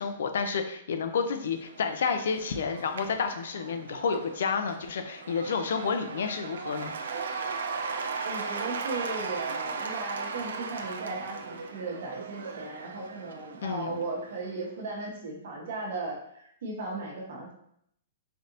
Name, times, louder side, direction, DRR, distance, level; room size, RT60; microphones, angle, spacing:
voice 1, 0.0-6.9 13.6-14.0, left 5 dB, 75° left, 7 dB, 0.5 m, -30 dB
Cheering / Applause / Crowd, 1.2-14.7, right 5 dB, 90° right, 0.4 m, -37 dB
voice 2, 8.2-17.5, right 3 dB, 65° right, -1 dB, 1.2 m, -36 dB
3.9 x 3.3 x 2.7 m, 0.71 s
hypercardioid pair, 160°, 0 cm